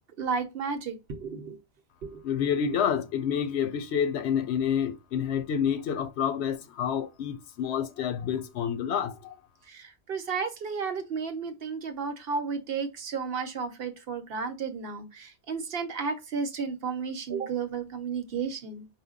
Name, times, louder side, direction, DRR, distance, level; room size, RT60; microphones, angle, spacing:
voice 1, 0.2-1.6 2.0-2.5 9.7-18.9, right 5 dB, 65° right, 0.9 m, -33 dB
voice 2, 2.2-9.4, left 8 dB, 85° left, 0.9 m, -28 dB
5.1 x 2.2 x 3.6 m
omnidirectional pair, 1.1 m